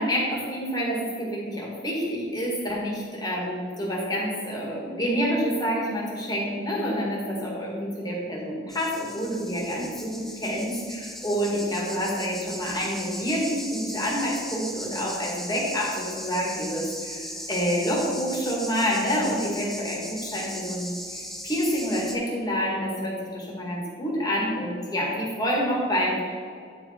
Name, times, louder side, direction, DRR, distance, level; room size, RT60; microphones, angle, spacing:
voice 1, 0.0-26.4, equal, 20° left, -3 dB, 1.7 m, -28 dB
sound 1, 8.7-22.2, equal, ahead, 0.5 m, -38 dB
9.4 x 4.7 x 4.3 m, 2.3 s
head